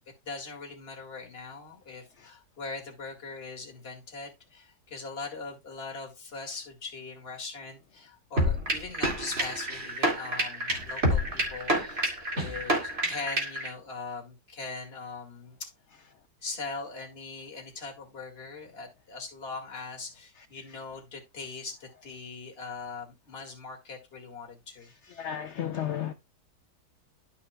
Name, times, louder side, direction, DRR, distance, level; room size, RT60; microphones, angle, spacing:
voice 1, 0.2-15.7 16.4-24.9, left 4 dB, 35° left, 2.2 m, -41 dB
sound 1, 8.4-13.7, equal, 35° right, 2.4 m, -28 dB
voice 2, 25.2-26.1, left 10 dB, 75° left, 0.6 m, -32 dB
12.5 x 5.7 x 2.3 m
omnidirectional pair, 1.8 m